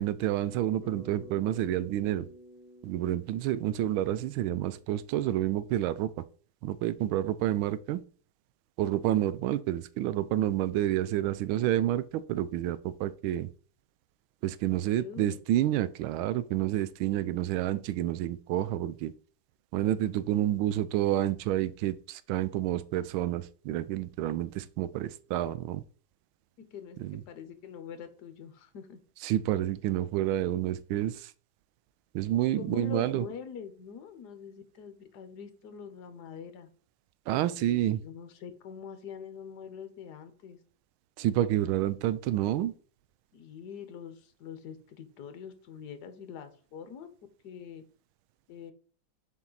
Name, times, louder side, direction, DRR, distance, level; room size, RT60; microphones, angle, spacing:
voice 1, 0.0-2.3 2.8-6.2 6.6-8.0 8.8-13.5 14.4-19.1 19.7-25.8 27.0-27.2 29.2-31.3 32.1-33.2 37.3-38.0 41.2-42.7, right 13 dB, 85° right, 1.4 m, -29 dB
Bass guitar, 0.8-5.2, left 1 dB, 20° left, 1.5 m, -51 dB
voice 2, 14.9-15.4 26.7-27.0 27.3-29.0 32.6-36.7 37.5-40.6 43.3-47.1 47.4-47.8 48.5-48.7, left 7 dB, 60° left, 1.3 m, -44 dB
7.2 x 4.5 x 3.9 m
omnidirectional pair, 2.2 m